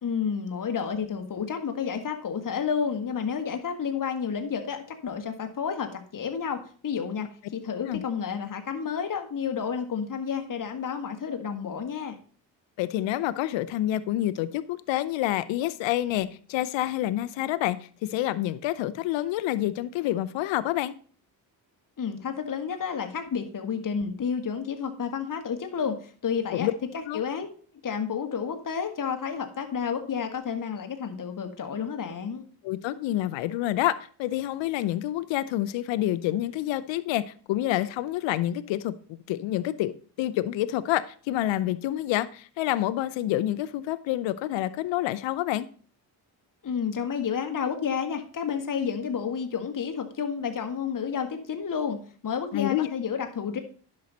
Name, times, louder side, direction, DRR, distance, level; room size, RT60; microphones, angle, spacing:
voice 1, 0.0-12.2 22.0-26.7 26.9-27.5 27.8-32.4 46.6-53.6, left 6 dB, 45° left, 5 dB, 1.6 m, -30 dB
voice 2, 12.8-20.9 26.5-26.7 27.1-27.2 32.6-37.2 37.5-45.7 52.5-52.9, left 14 dB, 80° left, 15 dB, 0.6 m, -28 dB
10.5 x 6.4 x 4.1 m, 0.43 s
supercardioid pair, 55°, 44 cm